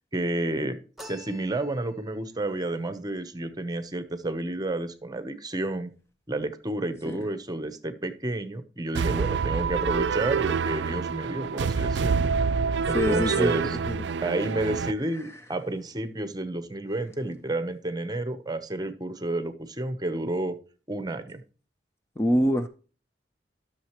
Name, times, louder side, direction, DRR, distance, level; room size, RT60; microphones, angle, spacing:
voice 1, 0.1-5.9 6.3-12.3 12.9-13.8 14.2-20.6 20.9-21.4, right 2 dB, 25° right, 0.8 m, -30 dB
sound 1, 1.0-2.2, left 1 dB, ahead, 0.9 m, -47 dB
sound 2, 8.9-14.9, right 5 dB, 80° right, 0.4 m, -27 dB
voice 2, 12.9-13.5 13.9-14.1 22.2-22.7, equal, 15° left, 0.5 m, -24 dB
13.0 x 6.5 x 3.0 m
head